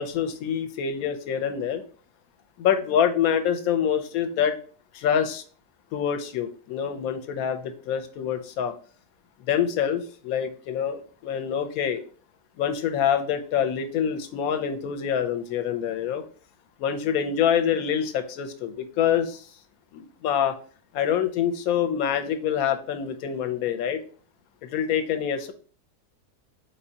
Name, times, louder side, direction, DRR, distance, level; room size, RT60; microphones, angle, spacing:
voice 1, 0.0-1.8 2.6-4.6 4.9-5.4 5.9-8.7 9.5-12.0 12.6-16.2 16.8-19.5 19.9-20.6 20.9-24.0 24.6-25.5, left 8 dB, 75° left, 8 dB, 1.0 m, -26 dB
4.3 x 3.7 x 2.8 m, 0.42 s
omnidirectional pair, 1.7 m